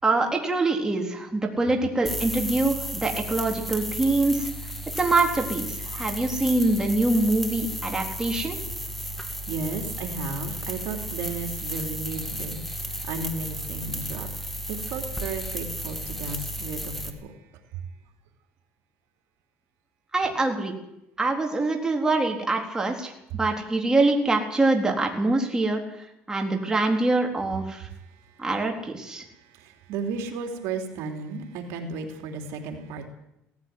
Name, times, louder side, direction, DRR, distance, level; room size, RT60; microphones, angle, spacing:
voice 1, 0.0-4.5 4.9-8.6 20.1-20.7 21.2-25.8 26.3-27.9 28.4-29.2, right 2 dB, 15° right, 2 dB, 3.9 m, -24 dB
sound 1, 2.1-17.1, equal, 5° left, 2.4 m, -34 dB
voice 2, 9.5-14.3 14.7-16.9 29.9-33.1, right 4 dB, 80° right, 4 dB, 3.3 m, -33 dB
17.5 x 15.5 x 9.6 m, 0.83 s
cardioid pair, 115°, 5 cm